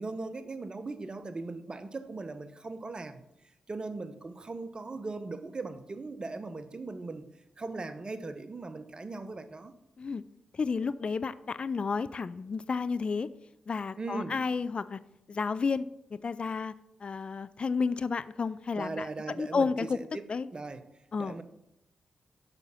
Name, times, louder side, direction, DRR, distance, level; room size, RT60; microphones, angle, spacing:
voice 1, 0.0-3.2 3.7-7.2 7.6-9.7 14.0-14.4 18.8-20.8 21.2-21.4, right 3 dB, 40° right, 0.9 m, -39 dB
voice 2, 10.5-13.3 13.7-15.0 15.3-15.9 16.1-16.7 17.0-19.1 19.4-20.0 20.3-20.5 21.1-21.3, left 5 dB, 50° left, 0.4 m, -31 dB
6.8 x 6.1 x 5.6 m
supercardioid pair, 40°, 2 cm